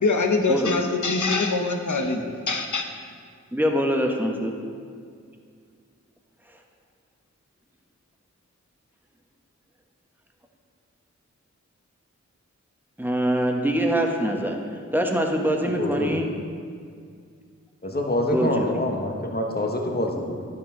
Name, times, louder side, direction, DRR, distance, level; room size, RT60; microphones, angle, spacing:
voice 1, 0.0-2.9, left 3 dB, 80° left, 5 dB, 0.8 m, -24 dB
voice 2, 3.5-4.5 13.0-14.6 14.9-16.3 18.3-18.7, equal, 5° right, 2 dB, 1.0 m, -24 dB
voice 3, 15.6-16.2 17.8-20.5, left 1 dB, 30° left, 1 dB, 1.1 m, -26 dB
10.5 x 6.1 x 3.7 m, 2.2 s
wide cardioid pair, 50°, 30 cm